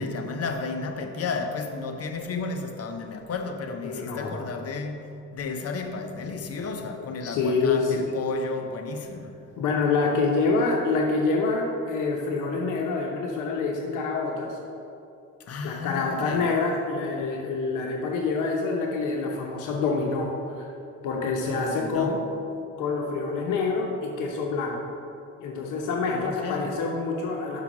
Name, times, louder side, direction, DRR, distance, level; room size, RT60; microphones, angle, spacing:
voice 1, 0.0-5.0 5.3-9.3 15.4-16.5 21.4-22.2 26.1-26.7, left 4 dB, 55° left, 5 dB, 0.9 m, -33 dB
voice 2, 3.8-4.3 7.2-8.1 9.6-14.6 15.6-20.7 21.0-22.2 22.8-24.8 25.4-27.6, left 4 dB, 85° left, 0 dB, 0.9 m, -26 dB
5.8 x 5.8 x 6.0 m, 2.6 s
cardioid pair, 90°, 30 cm